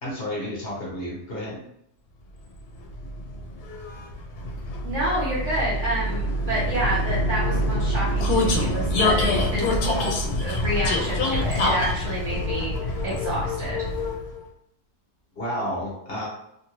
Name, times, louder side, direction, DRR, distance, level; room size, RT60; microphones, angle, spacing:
voice 1, 0.0-1.6 15.4-16.3, equal, 45° left, -4 dB, 0.9 m, -31 dB
Vehicle, 2.6-14.4, left 1 dB, 75° left, 1.1 m, -25 dB
voice 2, 4.8-13.9, right 1 dB, 50° right, -7 dB, 1.3 m, -29 dB
2.8 x 2.6 x 2.9 m, 0.74 s
omnidirectional pair, 1.7 m